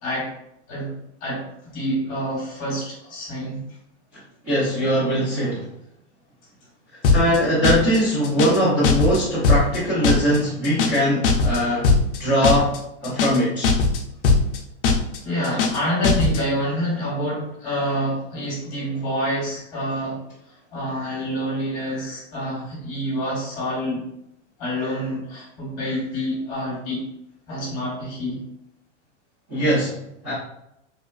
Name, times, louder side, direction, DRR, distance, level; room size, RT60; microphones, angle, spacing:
voice 1, 0.0-0.3 0.7-3.6 15.2-20.2 20.7-24.1 24.6-27.1 27.5-28.4, equal, 20° left, -6 dB, 1.0 m, -27 dB
voice 2, 4.4-5.7 7.1-11.9 12.2-12.7 13.0-13.7 29.5-29.9 30.2-30.3, equal, 15° right, -11 dB, 0.5 m, -21 dB
sound 1, 7.0-7.4 7.6-8.0 8.2-8.6 8.8-9.2 9.4-9.8 10.0-10.4 10.6-11.0 11.2-11.6 11.8-12.2 12.4-12.8 13.0-13.4 13.6-14.0 14.2-14.6 14.8-15.2 15.4-15.8 16.0-16.4, left 4 dB, 50° left, 0.4 m, -18 dB
3.1 x 2.1 x 2.3 m, 0.79 s
supercardioid pair, 170°, 36 cm